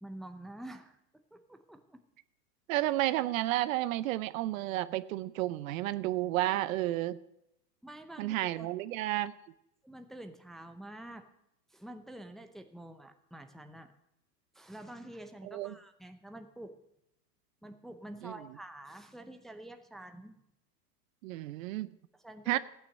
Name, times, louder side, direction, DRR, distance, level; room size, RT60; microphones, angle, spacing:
voice 1, 0.0-1.0 1.3-2.0 7.8-8.7 9.8-11.3 11.7-13.9 14.5-16.8 17.6-20.4 22.2-22.6, right 1 dB, ahead, 6 dB, 0.7 m, -47 dB
voice 2, 2.7-7.2 8.2-9.3 15.5-15.7 18.2-18.3 21.2-21.9 22.5-22.6, right 15 dB, 55° right, 15 dB, 0.7 m, -31 dB
14.5 x 9.0 x 6.6 m, 0.81 s
hypercardioid pair, 110°, 48 cm